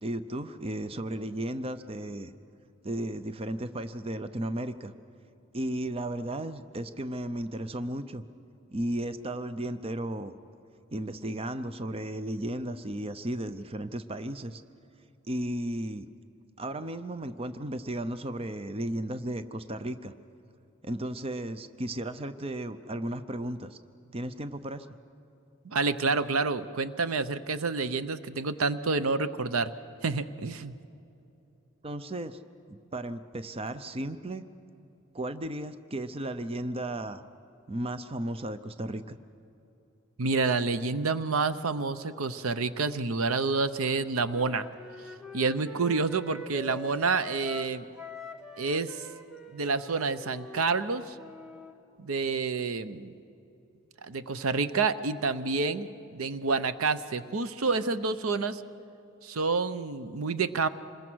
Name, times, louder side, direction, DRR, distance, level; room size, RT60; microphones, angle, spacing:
voice 1, 0.0-2.3 2.8-4.9 5.5-8.2 8.7-10.3 10.9-14.6 15.3-16.1 16.6-20.1 20.8-23.8 24.1-24.9 31.8-32.4 32.7-34.4 35.1-37.2 37.7-39.2, right 1 dB, 25° right, 11 dB, 0.6 m, -34 dB
voice 2, 25.6-29.7 30.0-30.7 40.2-44.7 45.3-47.9 48.6-49.0 49.5-51.2 52.0-53.1 54.0-58.6 59.2-60.7, right 4 dB, 80° right, 13 dB, 0.8 m, -28 dB
Wind instrument woodwind instrument, 44.3-51.7, left 1 dB, 5° right, 1.2 m, -44 dB
26.5 x 21.5 x 6.3 m, 2.9 s
head